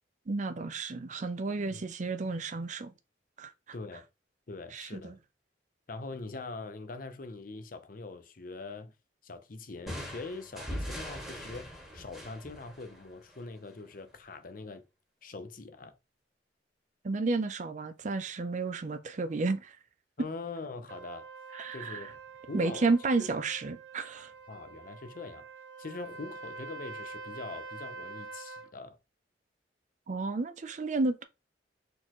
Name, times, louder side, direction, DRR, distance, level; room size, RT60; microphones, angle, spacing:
voice 1, 0.3-2.9 3.4-3.5 4.7-5.1 17.0-19.8 21.5-22.1 22.5-24.3 30.1-31.2, right 3 dB, 45° right, 0.5 m, -32 dB
voice 2, 3.7-4.1 4.5-5.2 5.9-8.9 9.2-14.8 15.2-15.9 20.2-21.3 21.7-22.1 22.5-22.9 23.2-23.3 24.5-25.5 25.8-29.0, left 3 dB, 50° left, 0.7 m, -43 dB
sound 1, 9.9-13.5, equal, ahead, 2.0 m, -41 dB
Trumpet, 20.9-28.7, right 3 dB, 75° right, 0.8 m, -46 dB
4.5 x 3.9 x 3.0 m
head